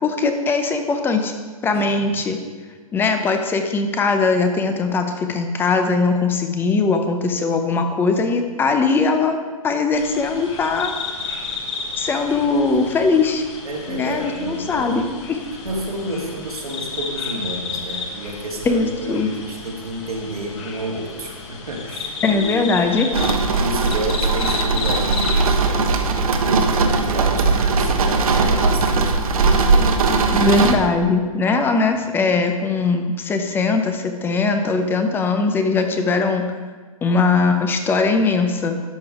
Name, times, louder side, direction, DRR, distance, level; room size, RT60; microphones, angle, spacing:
voice 1, 0.0-1.3 1.6-2.4 2.9-9.4 9.6-10.9 12.0-13.4 13.9-15.4 18.7-19.3 22.2-23.1 30.3-36.5 37.0-38.8, left 4 dB, 10° left, 6 dB, 0.6 m, -20 dB
voice 2, 1.7-2.1 12.3-12.9 13.6-15.0 15.6-23.0 23.6-29.2 29.5-30.5, right 1 dB, 85° right, -1 dB, 2.1 m, -31 dB
sound 1, 9.9-25.8, left 4 dB, 50° left, 1.6 m, -32 dB
sound 2, 23.1-30.8, right 4 dB, 70° right, 1.1 m, -19 dB
11.5 x 6.8 x 3.6 m, 1.4 s
hypercardioid pair, 130°, 19 cm